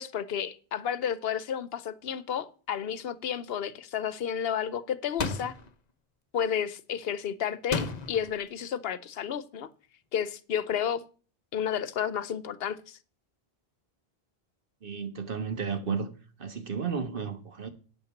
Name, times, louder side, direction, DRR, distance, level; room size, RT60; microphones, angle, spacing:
voice 1, 0.0-5.5 6.3-9.7 10.1-11.0 11.5-13.0, left 8 dB, 75° left, 1.0 m, -31 dB
sound 1, 5.2-5.7 7.7-8.3, left 4 dB, 45° left, 1.0 m, -32 dB
voice 2, 14.8-16.1 16.4-17.7, right 6 dB, 60° right, 1.6 m, -33 dB
8.7 x 7.1 x 7.1 m
omnidirectional pair, 1.0 m